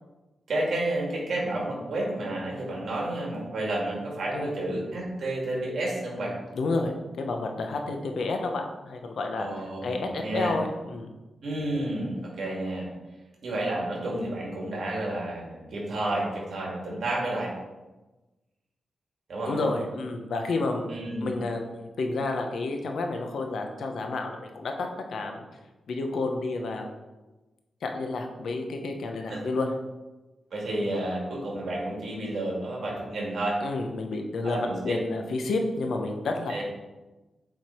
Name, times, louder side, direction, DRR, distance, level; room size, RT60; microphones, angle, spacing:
voice 1, 0.5-6.3 9.4-10.5 11.4-12.9 13.4-17.5 19.3-19.7 20.9-21.3 29.3-29.4 30.5-33.6 34.4-34.7 36.5-36.6, right 1 dB, 65° right, -3 dB, 2.2 m, -30 dB
voice 2, 6.5-11.1 19.5-20.8 21.2-25.5 25.9-26.8 27.8-29.7 33.6-36.6, left 3 dB, 75° left, 4 dB, 0.8 m, -30 dB
7.7 x 3.6 x 4.4 m, 1.1 s
wide cardioid pair, 135°, 0 cm